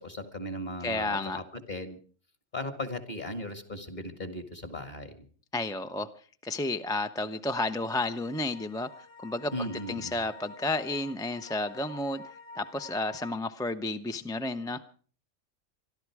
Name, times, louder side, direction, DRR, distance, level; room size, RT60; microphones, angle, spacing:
voice 1, 0.0-2.0 2.5-5.3 9.5-10.2, left 1 dB, 35° left, 9 dB, 2.1 m, -37 dB
voice 2, 0.8-1.4 5.5-6.1 6.4-8.9 9.2-12.2 12.6-14.8, left 2 dB, 5° left, 9 dB, 0.4 m, -31 dB
sound 1, 7.9-13.4, left 3 dB, 70° left, 2.2 m, -49 dB
25.5 x 12.0 x 4.8 m, 0.43 s
omnidirectional pair, 1.3 m